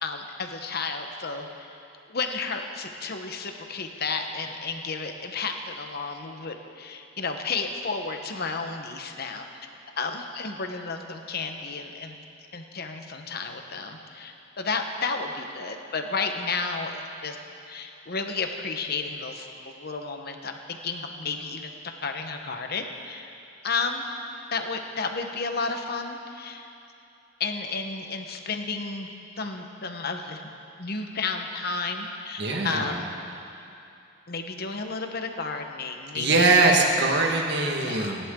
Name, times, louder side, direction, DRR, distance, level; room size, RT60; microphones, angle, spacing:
voice 1, 0.0-1.8 2.1-9.4 10.0-12.2 12.5-17.4 17.7-23.3 23.6-24.1 24.5-26.7 27.4-29.1 29.4-30.4 30.8-33.1 34.3-36.7 37.8-38.2, left 4 dB, 55° left, 5 dB, 1.2 m, -32 dB
voice 2, 32.4-33.0 36.1-38.3, right 3 dB, 60° right, 0 dB, 1.7 m, -22 dB
29.0 x 11.0 x 3.9 m, 2.7 s
head